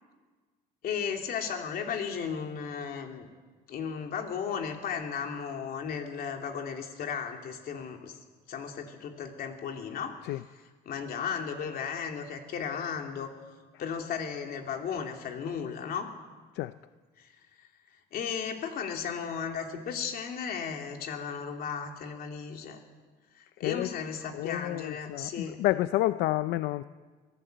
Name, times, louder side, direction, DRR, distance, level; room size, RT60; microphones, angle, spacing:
voice 1, 0.8-3.3 3.7-8.2 8.5-10.2 10.8-13.3 13.8-16.1 17.2-17.3 17.6-17.7 18.1-22.8 23.3-25.6, left 7 dB, 60° left, 3 dB, 3.0 m, -35 dB
voice 2, 24.3-26.8, left 16 dB, 85° left, 13 dB, 0.5 m, -29 dB
23.0 x 15.5 x 8.0 m, 1.4 s
cardioid pair, 110°, 17 cm